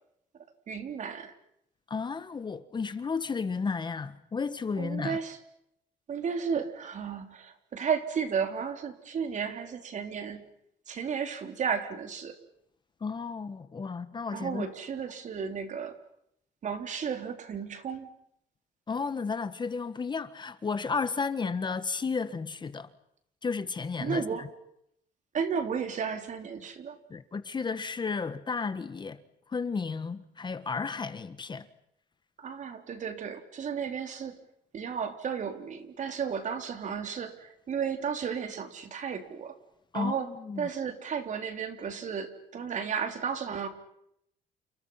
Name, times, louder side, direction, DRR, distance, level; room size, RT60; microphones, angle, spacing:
voice 1, 0.7-1.3 4.8-5.4 6.1-10.4 10.9-12.4 14.3-16.0 16.6-18.1 24.0-24.5 25.3-27.0 32.4-34.4 34.7-39.6 39.9-43.7, right 6 dB, 45° right, 3.8 m, -33 dB
voice 2, 1.9-5.2 13.0-14.7 18.9-22.9 23.4-24.5 27.1-29.2 29.5-31.7 39.9-40.7, left 5 dB, 25° left, 1.4 m, -33 dB
30.0 x 28.0 x 5.8 m
cardioid pair, 110°, 17 cm